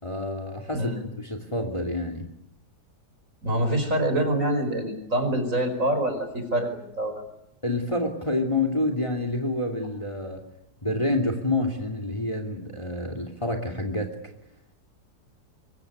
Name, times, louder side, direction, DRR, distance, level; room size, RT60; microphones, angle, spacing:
voice 1, 0.0-2.3 7.6-10.4 10.8-14.1, left 2 dB, 15° left, 5 dB, 2.8 m, -28 dB
voice 2, 0.7-1.0 3.4-7.2, right 1 dB, 45° right, 6 dB, 5.4 m, -26 dB
24.0 x 22.0 x 9.6 m, 0.79 s
omnidirectional pair, 1.8 m